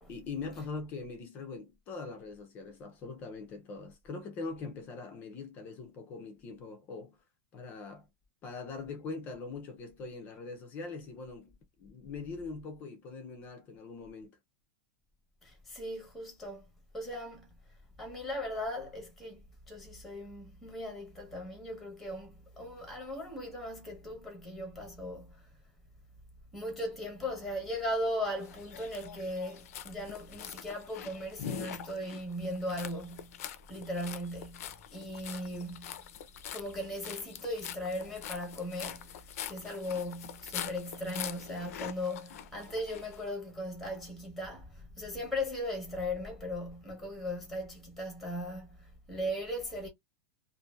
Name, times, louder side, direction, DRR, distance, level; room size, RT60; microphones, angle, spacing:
voice 1, 0.1-7.2 7.5-8.1 8.4-14.4, left 4 dB, 20° left, 0.4 m, -42 dB
voice 2, 15.4-16.7 16.9-17.5 18.0-25.5 26.5-33.4 33.7-36.0 36.5-49.9, left 1 dB, ahead, 0.8 m, -38 dB
sound 1, 28.4-43.2, left 10 dB, 75° left, 0.5 m, -44 dB
2.6 x 2.5 x 2.3 m
supercardioid pair, 180°, 8 cm